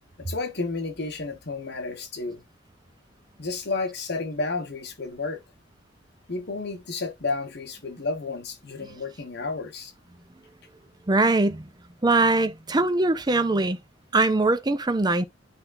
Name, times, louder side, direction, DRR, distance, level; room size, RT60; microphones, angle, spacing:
voice 1, 0.2-2.4 3.4-5.4 6.3-9.9, left 3 dB, 60° left, 1.3 m, -31 dB
voice 2, 11.1-11.7 12.0-13.8 14.1-15.3, right 2 dB, 20° right, 0.6 m, -22 dB
10.0 x 3.6 x 2.6 m
head